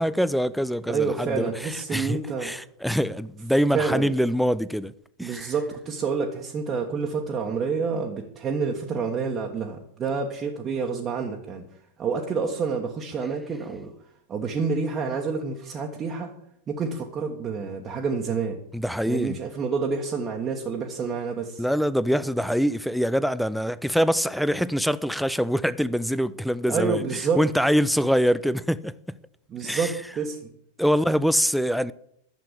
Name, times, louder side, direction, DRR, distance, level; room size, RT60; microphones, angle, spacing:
voice 1, 0.0-4.9 5.2-5.5 18.7-19.4 21.6-27.0 27.4-28.9 29.6-29.9 30.8-31.9, equal, ahead, 0.5 m, -24 dB
voice 2, 0.9-2.5 3.7-4.1 5.2-11.7 12.0-13.9 14.3-16.3 16.7-18.6 19.1-21.6 26.7-27.4 29.5-30.5, right 5 dB, 25° right, 1.5 m, -28 dB
11.5 x 7.6 x 8.4 m
figure-of-eight pair, 90°, 0 cm